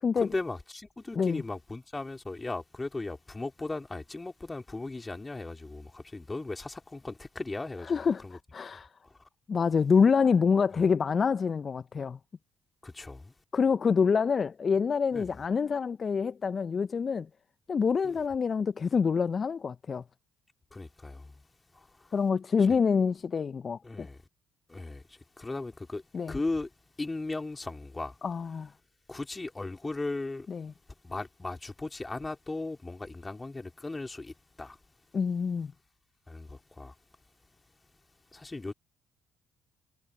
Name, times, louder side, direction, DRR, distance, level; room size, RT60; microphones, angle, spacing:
voice 1, 0.2-8.0 8.2-8.4 9.0-9.1 12.8-13.3 15.1-15.3 18.0-18.1 20.7-21.3 21.7-22.1 23.8-24.2 24.7-25.0 25.4-26.0 26.3-26.7 27.0-28.2 29.1-30.5 31.0-34.8 36.3-36.9 38.3-38.7, left 2 dB, 20° left, 4.2 m, -37 dB
voice 2, 7.8-8.9 9.5-12.2 13.5-17.3 17.7-20.0 22.1-24.1 26.1-26.4 28.2-28.7 30.5-30.7 35.1-35.7, left 5 dB, 40° left, 0.9 m, -26 dB
hypercardioid pair, 50°, 0 cm